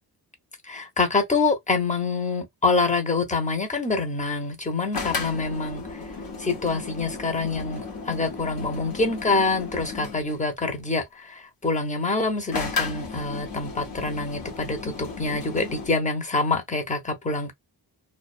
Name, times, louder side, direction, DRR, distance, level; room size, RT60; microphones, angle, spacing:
voice 1, 0.6-6.0 6.4-17.5, left 3 dB, 15° left, 0.7 m, -26 dB
sound 1, 4.9-10.4 12.5-15.9, left 4 dB, 55° left, 0.8 m, -34 dB
2.2 x 2.2 x 2.4 m
cardioid pair, 85°, 43 cm